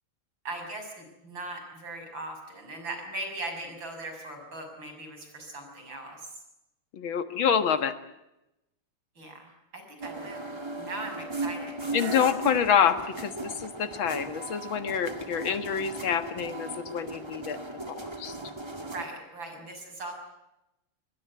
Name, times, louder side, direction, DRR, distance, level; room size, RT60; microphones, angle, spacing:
voice 1, 0.4-6.2 9.2-12.2 18.8-20.1, right 2 dB, 75° right, 5 dB, 6.8 m, -39 dB
voice 2, 6.9-8.0 11.9-17.6 17.9-18.4, left 8 dB, 85° left, 10 dB, 2.3 m, -27 dB
sound 1, 10.0-19.1, right 2 dB, 15° right, 2.1 m, -37 dB
24.0 x 20.0 x 9.5 m, 0.91 s
omnidirectional pair, 2.1 m